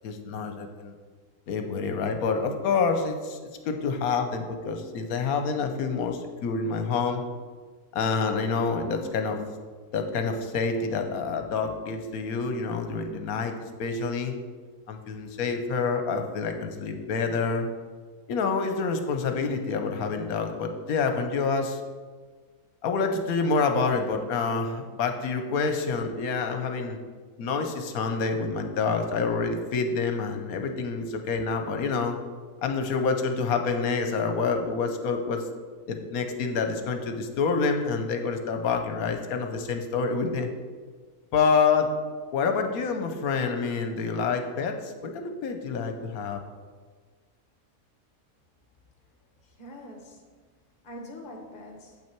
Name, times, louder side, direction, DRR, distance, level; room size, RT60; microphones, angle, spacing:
voice 1, 0.0-0.9 1.5-3.4 3.6-7.2 7.9-9.4 9.9-14.3 14.9-17.7 18.3-21.8 22.8-27.0 27.4-32.2 32.6-35.4 35.9-40.5 41.3-41.9 42.3-46.4, left 4 dB, 75° left, 6 dB, 1.2 m, -27 dB
voice 2, 49.4-50.3 50.8-52.0, left 1 dB, 35° left, 1 dB, 1.3 m, -44 dB
7.7 x 5.9 x 4.5 m, 1.5 s
omnidirectional pair, 1.6 m